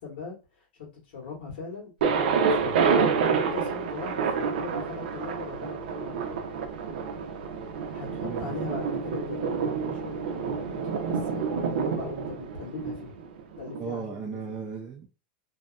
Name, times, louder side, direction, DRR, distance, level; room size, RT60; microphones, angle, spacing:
voice 1, 0.0-1.9 2.3-2.8 3.3-6.4 7.9-10.6 11.0-13.1 13.6-14.4, left 4 dB, 90° left, -5 dB, 1.3 m, -40 dB
Thunder, 2.0-13.8, right 6 dB, 75° right, 0.5 m, -28 dB
voice 2, 8.2-8.5 13.8-15.1, right 6 dB, 20° right, -2 dB, 0.4 m, -36 dB
2.7 x 2.3 x 2.3 m, 0.31 s
supercardioid pair, 170°, 5 cm